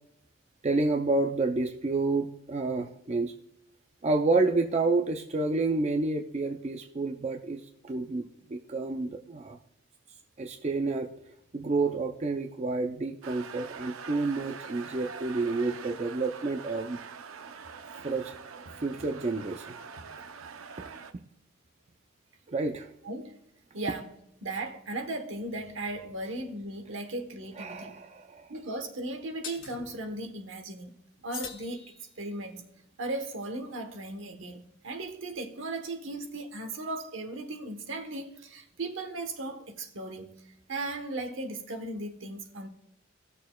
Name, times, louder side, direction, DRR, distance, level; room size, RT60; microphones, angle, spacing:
voice 1, 0.6-3.3 4.0-9.6 10.4-11.1 11.5-17.0 18.0-18.3 18.8-19.7 20.8-20.9 22.5-22.9 27.6-28.5, right 3 dB, 35° right, 0.4 m, -29 dB
sound 1, 13.2-21.1, right 6 dB, 85° right, 0.6 m, -44 dB
voice 2, 23.0-23.4 23.7-28.0 28.5-30.9 31.2-31.8 32.2-32.6 33.0-42.7, right 2 dB, 70° right, 1.1 m, -37 dB
sound 2, 27.5-27.6 29.4-29.8 31.3-32.4, left 7 dB, 75° left, 1.8 m, -42 dB
18.5 x 6.6 x 2.3 m
head